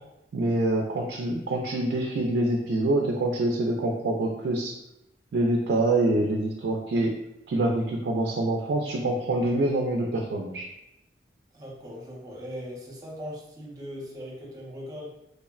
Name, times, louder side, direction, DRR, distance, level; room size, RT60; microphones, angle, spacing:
voice 1, 0.3-4.7 5.3-7.1 7.5-10.6, right 2 dB, 70° right, 0 dB, 0.3 m, -25 dB
voice 2, 11.5-15.1, equal, 20° right, -4 dB, 0.7 m, -39 dB
3.1 x 2.0 x 2.3 m, 0.87 s
head